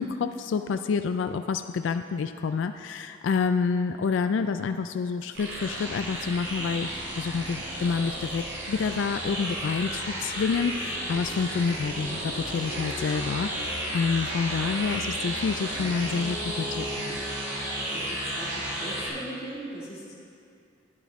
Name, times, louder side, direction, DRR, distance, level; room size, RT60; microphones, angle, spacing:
voice 1, 0.0-17.2, left 5 dB, 80° left, 8 dB, 0.3 m, -28 dB
sound 1, 5.3-19.1, right 1 dB, 70° right, 2.2 m, -33 dB
sound 2, 7.2-16.1, equal, 50° right, 2.0 m, -49 dB
voice 2, 17.9-18.5 18.8-20.1, right 1 dB, 35° left, -7 dB, 2.5 m, -39 dB
12.0 x 9.3 x 3.6 m, 2.4 s
head